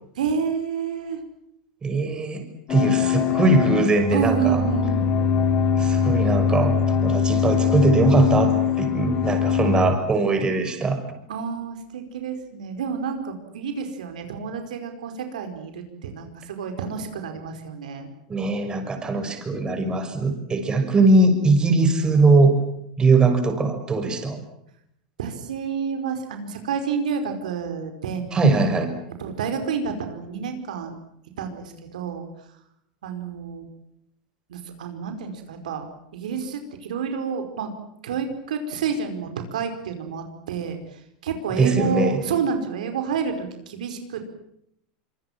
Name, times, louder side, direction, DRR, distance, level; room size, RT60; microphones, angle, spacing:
voice 1, 0.1-1.2 4.1-5.0 11.3-18.1 25.2-28.3 29.2-31.0 31.4-32.3 33.0-33.7 34.5-35.8 36.1-37.7 38.0-44.2, right 6 dB, 85° right, 6 dB, 4.8 m, -29 dB
voice 2, 1.8-4.6 5.8-11.0 18.3-22.6 23.0-24.4 28.3-28.9 41.5-42.2, right 3 dB, 20° right, 7 dB, 6.1 m, -21 dB
sound 1, 2.7-9.9, left 7 dB, 40° left, 4.3 m, -22 dB
26.0 x 23.5 x 7.4 m, 0.75 s
hypercardioid pair, 115°, 4 cm